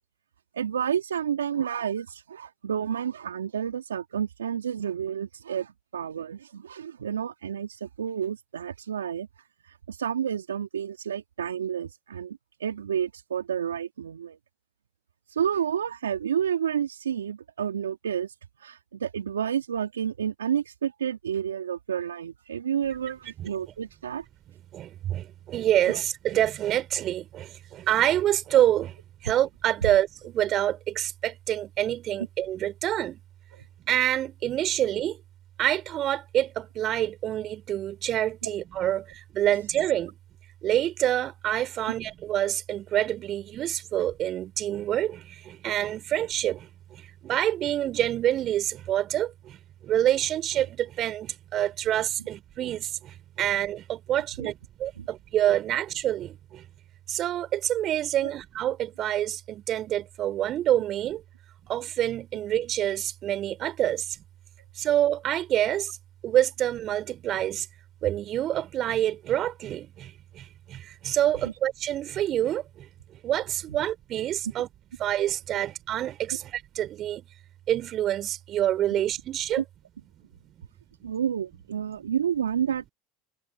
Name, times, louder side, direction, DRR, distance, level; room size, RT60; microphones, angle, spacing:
voice 1, 0.5-9.3 9.9-14.4 15.3-18.3 18.6-24.2 25.9-26.0 29.8-29.9 54.4-54.5 55.0-55.1 58.2-58.3 79.6-79.7 81.0-82.9, right 8 dB, 85° right, 2.9 m, -30 dB
voice 2, 24.7-28.9 29.2-33.2 33.9-35.2 35.6-40.1 40.6-46.7 47.0-49.6 49.8-56.6 57.1-61.2 61.6-64.2 64.8-66.0 66.2-67.7 68.0-72.9 73.2-74.7 75.0-77.3 77.7-79.6 80.6-80.7, right 12 dB, 45° right, 4.3 m, -27 dB
hypercardioid pair, 80°, 0 cm